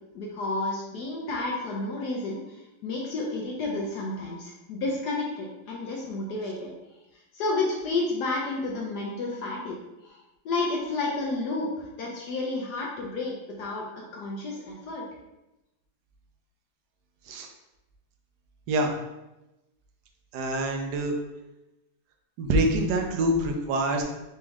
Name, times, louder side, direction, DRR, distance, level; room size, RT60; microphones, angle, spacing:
voice 1, 0.1-6.7 7.3-9.8 10.0-10.2 10.4-15.0, left 2 dB, 70° left, -2 dB, 1.0 m, -31 dB
voice 2, 20.3-21.2 22.4-24.0, right 1 dB, 70° right, 3 dB, 1.0 m, -25 dB
4.1 x 3.3 x 3.5 m, 0.96 s
omnidirectional pair, 2.3 m